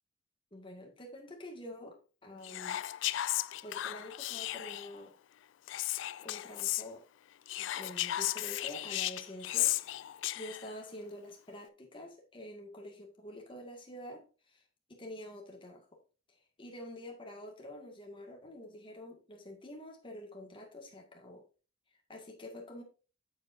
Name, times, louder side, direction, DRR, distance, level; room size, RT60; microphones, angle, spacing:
voice 1, 0.5-2.8 3.6-5.1 6.2-7.1 7.8-9.7 10.3-14.6 14.9-16.0 16.6-21.4 22.1-22.8, left 1 dB, 25° left, 2.1 m, -47 dB
Whispering, 2.4-5.0 5.7-6.8 7.5-10.7, left 15 dB, 70° left, 0.3 m, -35 dB
8.1 x 7.8 x 2.7 m
head